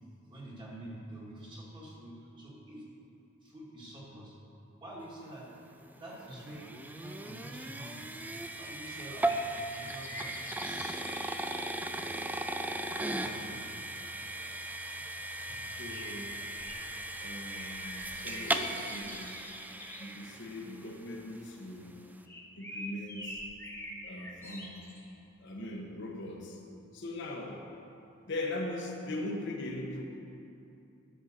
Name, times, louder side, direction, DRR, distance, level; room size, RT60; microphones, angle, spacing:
voice 1, 0.3-2.9 3.4-4.4 4.8-5.5 6.0-6.7 7.0-8.1 8.6-9.3 9.7-10.5 13.0-13.6 15.4-15.7, right 1 dB, 25° right, -5 dB, 2.0 m, -47 dB
sound 1, 5.7-20.9, right 1 dB, 10° right, 0.4 m, -37 dB
sound 2, 9.3-11.7 15.9-17.2 17.5-20.0 22.3-25.1, left 1 dB, 10° left, 1.1 m, -45 dB
voice 2, 15.7-16.3 17.2-19.3 20.0-21.9 22.6-23.4 24.0-24.8 25.4-26.6 26.9-27.6 28.2-30.0, left 1 dB, 60° left, 0 dB, 1.1 m, -40 dB
10.0 x 5.5 x 6.6 m, 2.7 s
head